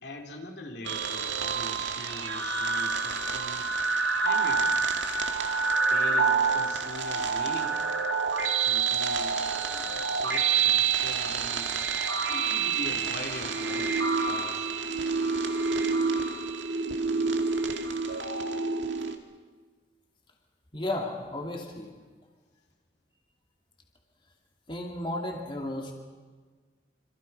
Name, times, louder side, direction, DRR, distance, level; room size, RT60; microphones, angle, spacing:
voice 1, 0.0-3.7 4.2-4.9 5.9-7.9 8.6-9.4 9.7-11.7 12.2-14.8, left 1 dB, 65° left, 3 dB, 3.1 m, -42 dB
sound 1, 0.8-19.1, right 5 dB, 85° right, 2.2 m, -27 dB
voice 2, 20.7-21.9 24.7-25.9, left 1 dB, 25° left, 1 dB, 2.5 m, -33 dB
27.0 x 26.5 x 5.6 m, 1.4 s
head